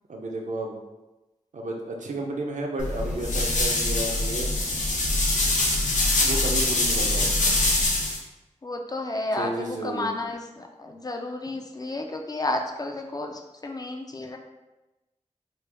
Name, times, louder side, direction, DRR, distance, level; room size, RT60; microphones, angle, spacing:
voice 1, 0.1-0.8 1.5-4.5 6.2-7.4 9.4-10.2, right 1 dB, 80° right, 1 dB, 0.5 m, -32 dB
sound 1, 2.8-8.2, left 2 dB, 80° left, 0.6 m, -24 dB
voice 2, 8.6-14.4, left 2 dB, 30° left, 3 dB, 0.3 m, -32 dB
3.2 x 2.1 x 3.3 m, 1.0 s
wide cardioid pair, 80°, 13 cm